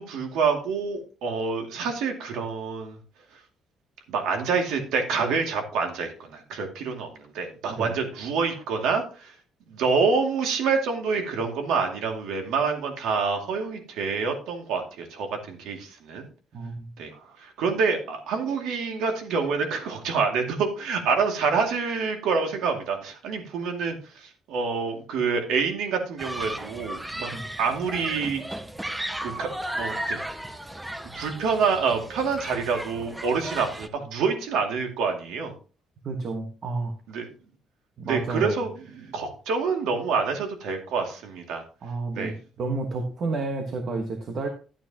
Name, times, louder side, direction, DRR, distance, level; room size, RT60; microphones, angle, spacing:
voice 1, 0.0-3.0 4.1-9.3 9.7-16.3 17.0-17.1 17.4-27.3 27.6-28.4 29.2-29.5 29.8-30.2 31.1-35.5 37.1-37.3 38.0-41.6 42.1-42.3, right 5 dB, 90° right, 4 dB, 2.3 m, -27 dB
voice 2, 16.5-16.9 27.3-27.4 36.0-36.9 38.0-38.6 41.8-44.5, right 3 dB, 40° right, 5 dB, 1.3 m, -30 dB
Human group actions, 26.2-33.9, right 1 dB, 5° right, 0.6 m, -35 dB
12.5 x 8.8 x 2.9 m, 0.36 s
cardioid pair, 175°, 0 cm